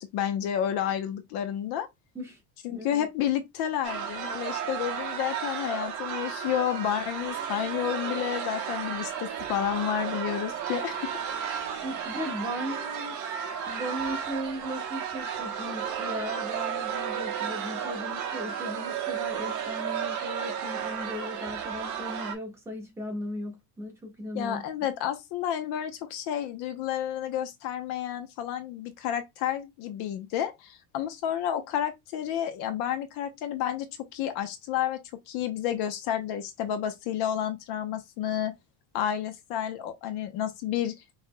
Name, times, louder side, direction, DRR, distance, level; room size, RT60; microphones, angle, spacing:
voice 1, 0.0-1.9 2.6-11.1 24.3-33.9 34.1-35.0 35.3-38.5 38.9-40.9, left 10 dB, 60° left, 0.9 m, -30 dB
voice 2, 2.7-3.1 11.8-13.2 13.7-24.6, equal, 5° right, 1.3 m, -37 dB
sound 1, 3.8-22.4, right 8 dB, 40° right, 1.2 m, -33 dB
5.6 x 3.4 x 2.3 m
cardioid pair, 175°, 44 cm